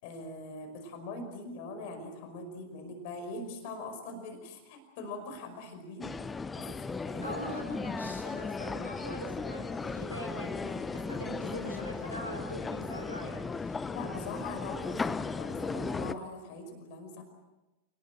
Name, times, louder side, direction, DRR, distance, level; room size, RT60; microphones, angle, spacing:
voice 1, 0.0-6.1 6.5-7.4 13.9-17.2, left 2 dB, 50° left, 6 dB, 5.3 m, -42 dB
sound 1, 6.0-16.1, left 4 dB, 15° left, 0.9 m, -36 dB
voice 2, 7.2-13.9, right 1 dB, 90° left, 1 dB, 4.0 m, -42 dB
29.0 x 20.0 x 7.9 m, 1.0 s
figure-of-eight pair, 90°, 0 cm